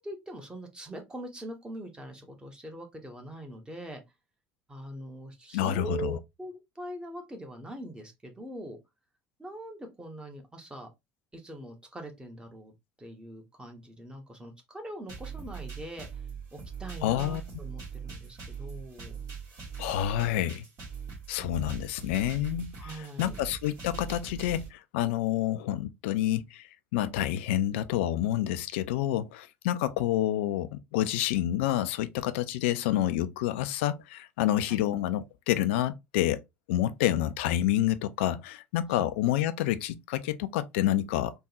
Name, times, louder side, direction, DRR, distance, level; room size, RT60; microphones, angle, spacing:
voice 1, 0.0-4.0 4.7-8.8 9.4-10.9 11.3-12.7 13.0-16.2 16.5-19.2 22.8-23.4 34.7-34.8 38.9-39.0, right 1 dB, 10° right, 1.1 m, -42 dB
voice 2, 5.5-6.2 17.0-17.4 19.8-20.7 21.3-26.6 26.9-36.4 36.7-41.3, left 12 dB, 65° left, 0.3 m, -28 dB
sound 1, 15.1-24.7, right 6 dB, 50° right, 1.9 m, -41 dB
3.5 x 2.2 x 2.9 m
figure-of-eight pair, 65°, 7 cm